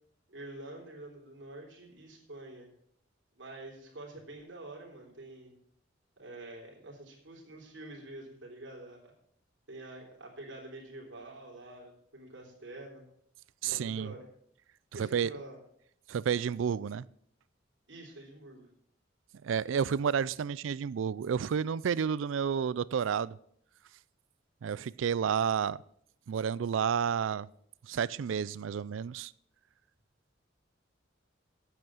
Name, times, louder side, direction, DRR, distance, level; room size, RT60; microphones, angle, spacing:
voice 1, 0.3-2.7 3.4-5.6 6.2-9.1 9.7-13.0 13.6-14.2 14.9-15.6 17.9-18.7, right 2 dB, 70° right, 3.4 m, -47 dB
voice 2, 13.6-14.1 15.0-15.3 16.1-17.1 19.4-23.4 24.6-25.8 26.3-27.5 27.9-29.3, right 7 dB, 85° right, 0.4 m, -30 dB
9.1 x 8.1 x 6.3 m
head